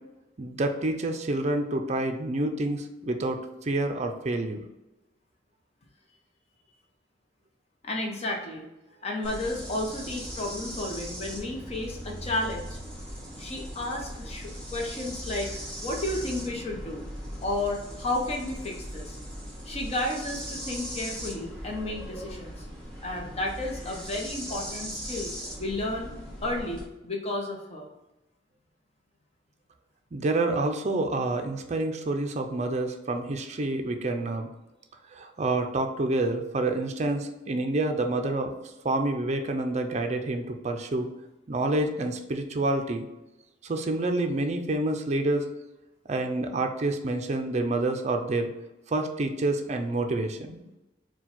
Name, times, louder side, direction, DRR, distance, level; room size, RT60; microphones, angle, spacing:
voice 1, 0.4-4.6 30.1-34.5 35.1-38.5 38.8-41.1 41.5-43.1 43.6-45.4 46.1-48.5 48.9-50.6, right 2 dB, 40° right, 5 dB, 0.5 m, -28 dB
voice 2, 7.8-8.7 9.0-12.8 13.4-15.5 15.8-17.0 17.4-19.2 19.7-22.7 23.0-25.3 25.6-26.1 26.4-27.9, left 1 dB, 35° left, 1 dB, 0.8 m, -32 dB
sound 1, 9.2-26.9, equal, 5° left, 1.1 m, -39 dB
4.4 x 2.2 x 4.1 m, 0.98 s
head